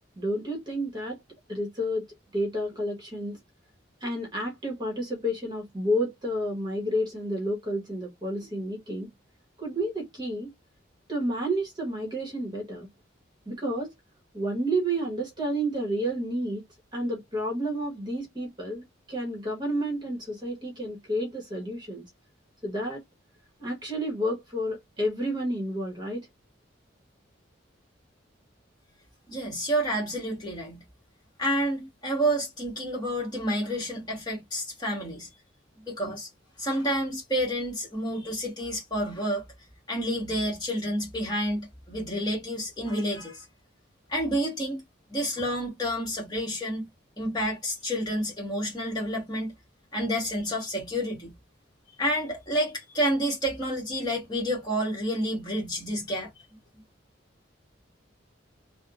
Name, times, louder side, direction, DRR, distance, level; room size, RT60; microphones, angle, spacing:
voice 1, 0.2-1.2 1.5-2.1 2.3-3.4 4.0-9.1 9.6-10.5 11.1-12.9 13.5-13.9 14.3-16.6 16.9-22.0 22.6-23.0 23.6-26.3, equal, 20° right, 1.1 m, -30 dB
voice 2, 29.3-30.8 31.4-35.3 35.9-36.3 36.6-39.4 39.9-43.5 44.1-44.8 45.1-46.9 47.2-49.5 49.9-51.3 52.0-56.3, equal, 20° left, 1.4 m, -29 dB
3.4 x 2.2 x 2.4 m
head